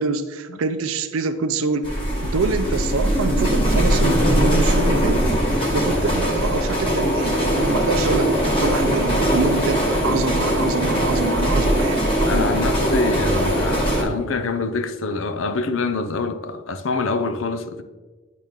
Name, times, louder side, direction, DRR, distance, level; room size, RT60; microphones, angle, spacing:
voice 1, 0.0-1.9 2.2-12.1, right 4 dB, 85° right, 0.5 m, -26 dB
sound 1, 1.8-14.0, equal, 25° left, 2.2 m, -20 dB
voice 2, 12.3-17.8, left 3 dB, 65° left, 0.6 m, -25 dB
10.5 x 4.2 x 3.6 m
head